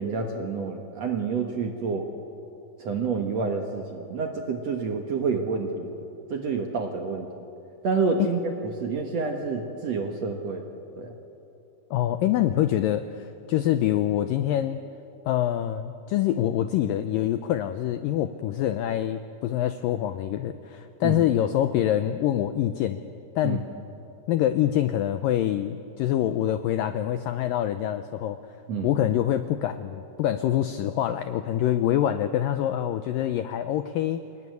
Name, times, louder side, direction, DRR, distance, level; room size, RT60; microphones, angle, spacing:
voice 1, 0.0-2.1 2.8-7.3 7.8-10.7 11.0-11.1 21.0-21.3 23.4-23.6 28.7-29.0, right 4 dB, 60° right, 3 dB, 1.9 m, -28 dB
voice 2, 11.9-14.8 15.3-23.0 23.4-23.6 24.3-28.4 28.8-34.2, left 11 dB, 85° left, 10 dB, 2.0 m, -25 dB
28.5 x 19.5 x 9.5 m, 2.8 s
omnidirectional pair, 4.8 m